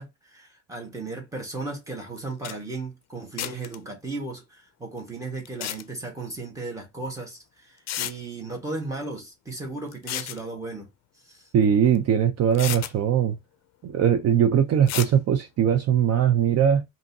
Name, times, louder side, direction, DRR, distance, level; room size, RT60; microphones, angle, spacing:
voice 1, 0.0-10.9 11.2-11.5, right 3 dB, 10° right, 1.5 m, -36 dB
sound 1, 2.2-2.3 2.4-2.6 3.4-3.8 5.5-5.8 7.2-7.3 7.9-8.1 9.9-10.4 11.9-12.0 12.5-12.9 14.9-15.1, left 12 dB, 55° left, 0.5 m, -31 dB
voice 2, 11.5-13.4 13.8-16.8, right 8 dB, 50° right, 0.6 m, -20 dB
5.2 x 2.8 x 2.7 m
cardioid pair, 165°, 33 cm